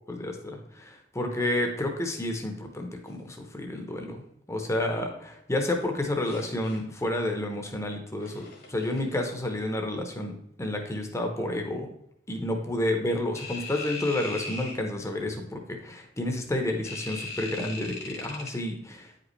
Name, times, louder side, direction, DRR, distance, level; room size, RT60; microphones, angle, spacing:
voice 1, 0.1-4.2 4.5-10.3 10.6-11.9 12.3-19.1, left 1 dB, 15° left, 3 dB, 0.8 m, -30 dB
sound 1, 6.2-6.8 8.2-9.0 13.4-14.8 16.8-18.5, left 3 dB, 60° left, 1.5 m, -39 dB
9.1 x 5.1 x 3.2 m, 0.73 s
head